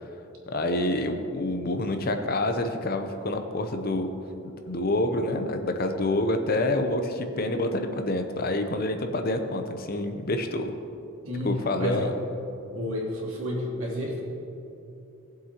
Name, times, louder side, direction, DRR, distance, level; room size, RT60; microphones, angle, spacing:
voice 1, 0.5-4.1 4.7-10.7 11.4-12.1, left 1 dB, 45° left, 6 dB, 0.7 m, -27 dB
voice 2, 11.2-12.1 12.7-14.2, left 1 dB, 75° right, -4 dB, 2.6 m, -30 dB
19.0 x 7.5 x 3.0 m, 2.8 s
head